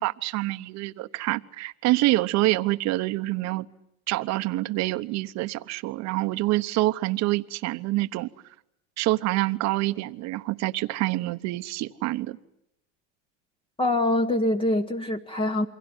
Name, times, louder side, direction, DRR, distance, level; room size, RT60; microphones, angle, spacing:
voice 1, 0.0-3.7 4.1-8.3 9.0-12.4, right 18 dB, 50° right, 1.1 m, -26 dB
voice 2, 13.8-15.7, left 1 dB, 15° left, 1.1 m, -24 dB
28.5 x 23.5 x 8.1 m
supercardioid pair, 120°, 34 cm